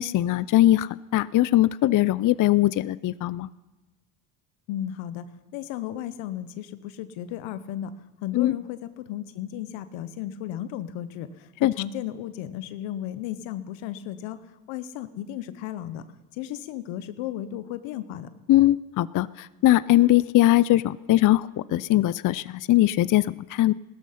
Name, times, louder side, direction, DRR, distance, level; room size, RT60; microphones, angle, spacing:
voice 1, 0.0-3.5 8.3-8.6 11.6-11.7 18.5-23.7, left 15 dB, 45° left, 18 dB, 0.5 m, -21 dB
voice 2, 4.7-5.3 5.5-7.9 8.2-14.4 14.7-16.0 16.3-18.3, left 12 dB, 80° left, 12 dB, 0.9 m, -34 dB
16.5 x 13.0 x 5.7 m, 1.1 s
supercardioid pair, 70°, 45 cm